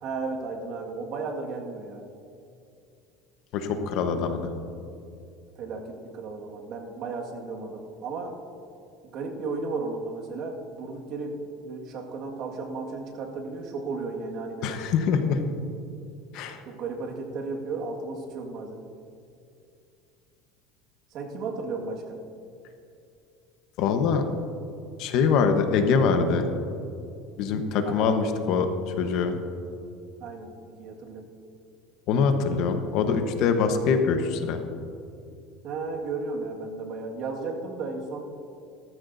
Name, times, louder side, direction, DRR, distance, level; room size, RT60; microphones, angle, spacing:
voice 1, 0.0-2.0 5.6-8.3 9.0-14.7 16.7-18.8 21.1-22.2 27.8-28.1 30.2-31.2 35.6-38.2, right 3 dB, 50° right, 1 dB, 1.8 m, -34 dB
voice 2, 3.5-4.5 14.6-15.4 16.3-16.6 23.8-24.2 25.0-26.5 27.4-28.7 29.0-29.4 32.1-34.6, left 5 dB, 60° left, 6 dB, 1.1 m, -24 dB
17.0 x 14.0 x 2.7 m, 2.5 s
cardioid pair, 140°, 0 cm